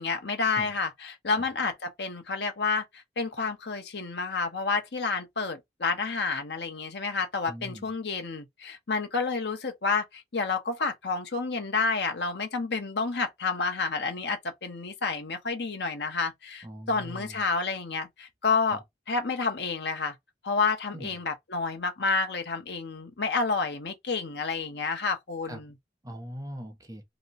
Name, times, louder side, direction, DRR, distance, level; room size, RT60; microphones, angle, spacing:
voice 1, 0.0-20.2 20.4-25.7, left 4 dB, 70° left, 0.9 m, -30 dB
voice 2, 7.5-7.9 16.6-17.4 18.7-18.8 20.9-21.2 25.5-25.6 26.0-27.0, equal, 20° right, 0.8 m, -41 dB
2.9 x 2.2 x 3.9 m
head